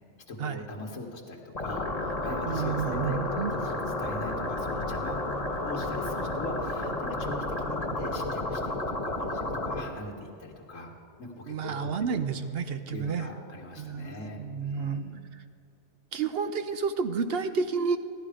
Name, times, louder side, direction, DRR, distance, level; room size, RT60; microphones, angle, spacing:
voice 1, 0.3-5.2 5.6-10.9 11.2-12.2 12.9-15.2, left 2 dB, 85° left, 1 dB, 1.8 m, -40 dB
sound 1, 1.5-9.8, left 2 dB, 30° left, 1.4 m, -32 dB
voice 2, 2.5-3.5 11.5-13.3 13.8-15.0 16.1-18.0, right 5 dB, 60° right, 9 dB, 0.8 m, -30 dB
16.0 x 11.5 x 5.0 m, 2.5 s
omnidirectional pair, 1.3 m